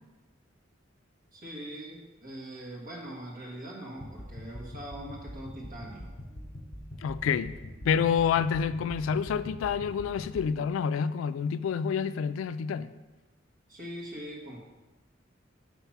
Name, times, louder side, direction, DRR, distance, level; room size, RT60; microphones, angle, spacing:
voice 1, 1.3-6.1 13.7-14.6, right 1 dB, 45° right, -2 dB, 1.5 m, -42 dB
sound 1, 4.0-10.4, equal, 55° left, 2.0 m, -44 dB
voice 2, 7.0-7.6 7.8-12.9, left 7 dB, 90° left, 14 dB, 0.3 m, -28 dB
5.7 x 3.9 x 5.8 m, 1.1 s
head